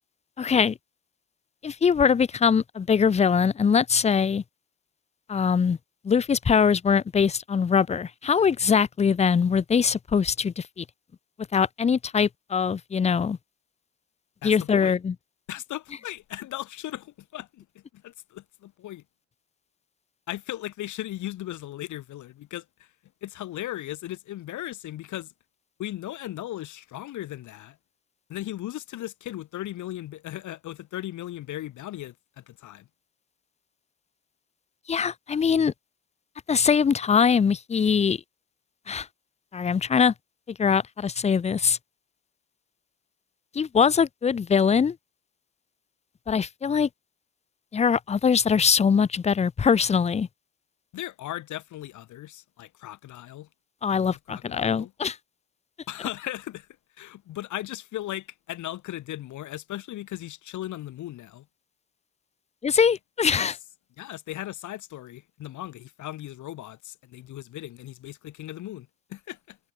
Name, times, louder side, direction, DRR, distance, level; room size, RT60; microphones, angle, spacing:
voice 1, 0.4-0.8 1.6-4.4 5.3-5.8 6.0-10.8 11.5-13.4 14.4-15.1 34.9-35.7 36.5-38.2 38.9-39.1 39.5-40.1 40.5-41.8 43.5-45.0 46.3-46.9 47.7-50.3 53.8-55.2 62.6-63.5, left 6 dB, 20° left, 0.4 m, -22 dB
voice 2, 14.4-15.0 15.5-19.0 20.3-22.9 23.2-25.3 25.8-27.8 28.3-32.9 50.9-53.5 53.9-54.9 55.9-56.7 57.0-61.5 63.3-63.5 64.0-69.6, left 14 dB, 75° left, 1.3 m, -37 dB
cardioid pair, 90°, 30 cm